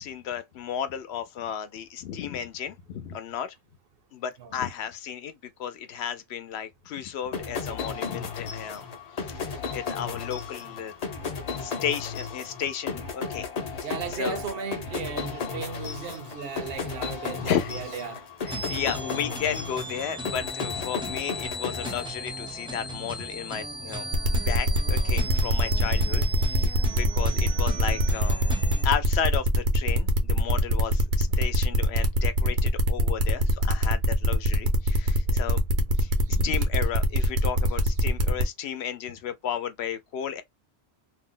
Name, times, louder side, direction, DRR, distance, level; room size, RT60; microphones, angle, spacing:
voice 1, 0.0-3.5 4.1-8.8 9.2-10.9 11.6-13.5 13.8-13.9 14.1-14.4 17.3-17.7 18.4-28.4 28.8-35.6 36.0-40.4, left 8 dB, 75° left, 0.8 m, -33 dB
sound 1, 7.3-22.6, left 5 dB, 45° left, 0.6 m, -34 dB
voice 2, 13.8-18.2 23.8-24.0 25.9-26.0 35.3-35.5, right 6 dB, 65° right, 0.8 m, -36 dB
sound 2, 18.5-28.8, right 1 dB, 5° right, 0.5 m, -37 dB
sound 3, 24.1-38.4, equal, 85° right, 1.1 m, -23 dB
2.6 x 2.0 x 3.6 m
omnidirectional pair, 1.1 m